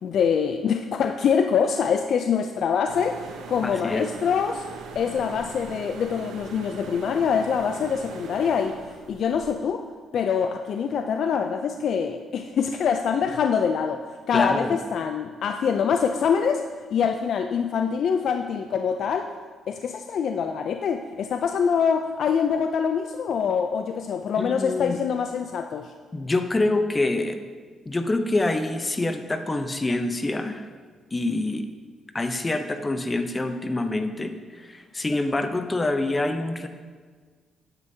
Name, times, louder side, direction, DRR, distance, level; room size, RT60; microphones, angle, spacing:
voice 1, 0.0-3.2 3.5-4.6 5.0-8.8 9.1-9.8 10.1-16.6 16.9-19.3 19.7-25.9, left 6 dB, 65° left, 6 dB, 0.3 m, -24 dB
sound 1, 2.8-9.5, right 5 dB, 85° right, 0.8 m, -40 dB
voice 2, 3.6-4.1 14.3-14.8 24.4-25.0 26.1-27.4 27.9-30.7 31.1-31.7 32.1-36.7, left 2 dB, 20° left, 7 dB, 0.6 m, -26 dB
9.6 x 7.0 x 2.7 m, 1.5 s
cardioid pair, 90°, 0 cm